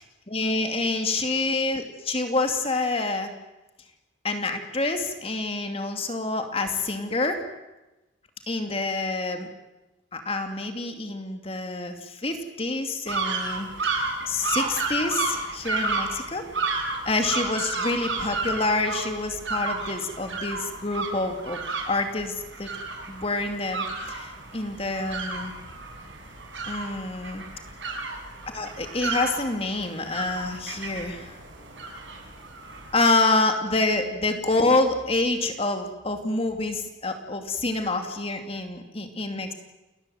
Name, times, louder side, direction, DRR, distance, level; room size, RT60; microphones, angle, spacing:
voice 1, 0.3-3.3 4.2-7.4 8.5-9.5 10.1-21.6 21.9-22.7 23.1-25.5 26.7-27.4 28.5-31.4 32.9-39.5, left 2 dB, 30° left, 5 dB, 2.5 m, -27 dB
sound 1, 13.1-32.9, right 3 dB, 80° right, 6.5 m, -32 dB
29.0 x 20.0 x 7.9 m, 1.0 s
head